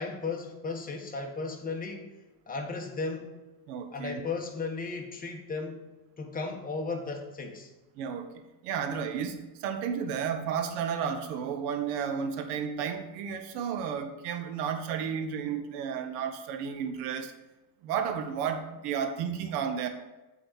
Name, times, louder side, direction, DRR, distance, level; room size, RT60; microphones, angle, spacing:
voice 1, 0.0-2.0 2.5-3.3 3.9-5.8 6.2-7.7, left 4 dB, 15° left, 1 dB, 1.3 m, -35 dB
voice 2, 3.7-4.2 7.9-17.3 17.8-19.9, right 7 dB, 75° right, 7 dB, 1.1 m, -32 dB
8.1 x 3.9 x 6.3 m, 1.1 s
supercardioid pair, 105°, 49 cm